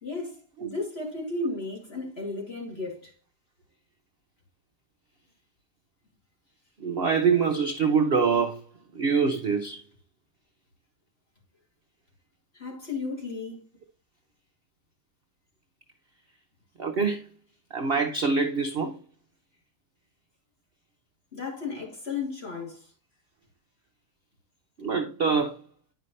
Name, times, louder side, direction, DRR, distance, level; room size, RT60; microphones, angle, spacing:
voice 1, 0.0-3.1 12.5-13.6 21.3-22.8, left 3 dB, 35° left, 3.1 m, -34 dB
voice 2, 6.8-8.6 8.9-9.8 16.8-17.3 17.7-19.0 24.8-25.6, right 5 dB, 50° right, 0.7 m, -25 dB
10.0 x 5.5 x 3.2 m
omnidirectional pair, 1.8 m